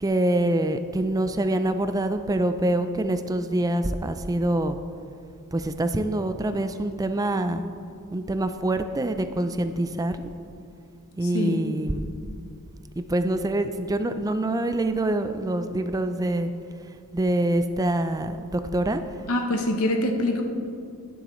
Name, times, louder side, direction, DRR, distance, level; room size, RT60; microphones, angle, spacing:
voice 1, 0.0-4.8 5.5-7.6 8.1-10.2 11.2-12.1 13.0-16.5 17.1-19.0, right 1 dB, 15° right, 9 dB, 0.4 m, -25 dB
voice 2, 11.2-11.6 19.3-20.4, left 1 dB, 70° left, 4 dB, 0.8 m, -25 dB
11.5 x 10.0 x 3.1 m, 2.4 s
head